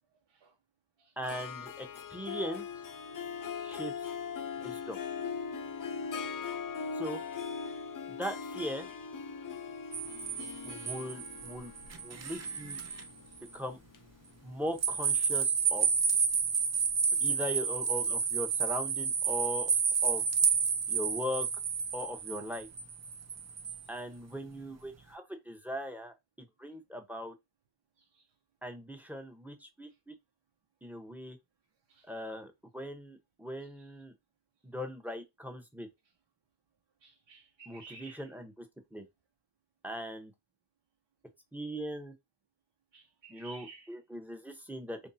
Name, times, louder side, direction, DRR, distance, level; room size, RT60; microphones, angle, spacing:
Harp, 1.2-14.8, left 6 dB, 45° left, 0.6 m, -40 dB
voice 1, 1.2-2.7 3.6-4.1 4.6-5.0 6.9-7.2 8.1-8.9 10.6-11.7 12.0-12.8 13.5-13.8 14.4-15.9 17.2-19.7 20.0-20.2 20.9-21.5 21.9-22.7 23.9-27.3 28.6-30.1 30.8-31.4 32.1-34.1 34.6-35.9 37.7-38.7 38.9-39.0 39.8-40.3 41.5-42.1 43.3-45.0, equal, 5° right, 0.8 m, -39 dB
sound 1, 9.9-13.1 13.5-13.6 14.8-23.8, right 6 dB, 35° right, 0.6 m, -30 dB
voice 2, 37.0-38.3 42.9-43.9, right 4 dB, 70° right, 1.1 m, -54 dB
3.2 x 2.7 x 4.1 m
wide cardioid pair, 95°, 48 cm